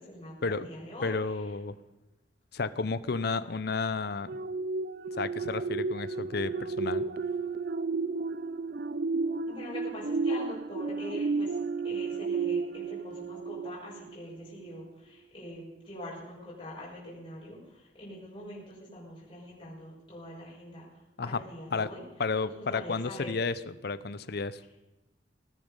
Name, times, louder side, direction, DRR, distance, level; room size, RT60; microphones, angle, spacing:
voice 1, 0.0-1.1 9.5-11.5 11.8-20.8 21.2-22.0 22.4-23.3, left 1 dB, 30° left, -6 dB, 5.9 m, -44 dB
voice 2, 1.0-1.8 2.5-4.3 5.2-7.1 21.2-21.4 21.7-21.9 22.2-24.6, left 4 dB, 60° left, 14 dB, 0.7 m, -32 dB
sound 1, 4.3-14.1 14.6-14.8, right 4 dB, 55° right, 0.5 m, -32 dB
19.0 x 10.5 x 5.5 m, 1.0 s
head